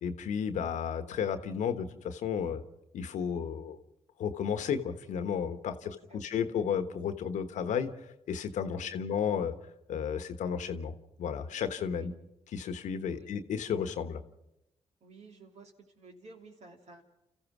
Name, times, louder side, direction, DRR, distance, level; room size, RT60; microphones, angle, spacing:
voice 1, 0.0-2.6 2.9-3.8 4.2-7.9 8.3-9.5 9.9-12.1 12.5-14.2, left 7 dB, 80° left, 10 dB, 1.2 m, -33 dB
voice 2, 5.8-6.5 8.8-9.1 11.9-12.1 13.1-13.3 15.0-17.0, right 2 dB, 65° right, 2 dB, 3.0 m, -54 dB
29.0 x 14.5 x 6.1 m, 0.90 s
supercardioid pair, 55°, 12 cm